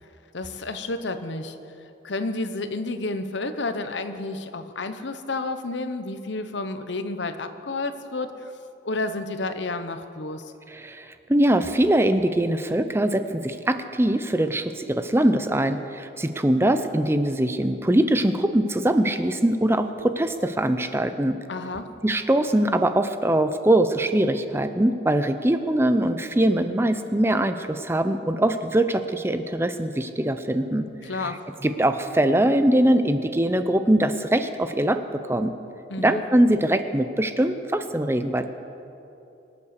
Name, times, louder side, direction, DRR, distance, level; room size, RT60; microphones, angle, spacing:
voice 1, 0.3-1.6 2.0-8.5 8.8-10.5 21.5-21.9 31.0-31.4 35.9-36.2, left 2 dB, 70° left, 9 dB, 0.9 m, -30 dB
voice 2, 10.7-21.4 22.0-30.9 31.2-31.3 31.6-35.5 36.0-38.5, right 1 dB, 15° right, 9 dB, 0.5 m, -22 dB
24.0 x 8.6 x 6.6 m, 2.9 s
head